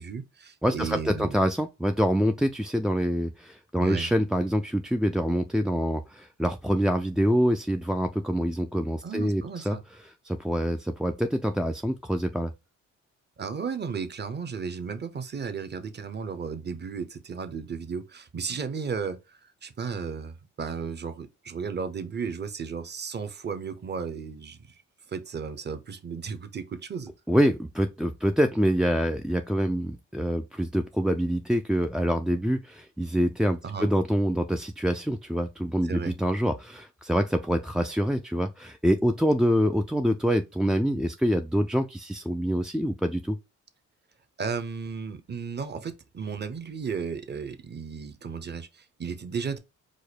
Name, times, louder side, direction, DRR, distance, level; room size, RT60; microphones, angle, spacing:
voice 1, 0.0-1.4 3.8-4.1 9.0-9.8 13.4-24.8 25.1-27.1 33.6-33.9 35.8-36.1 44.4-49.6, right 5 dB, 35° right, 0.9 m, -34 dB
voice 2, 0.6-9.8 10.2-12.5 27.3-43.4, equal, ahead, 0.3 m, -26 dB
4.9 x 2.1 x 4.1 m
cardioid pair, 90°, 30 cm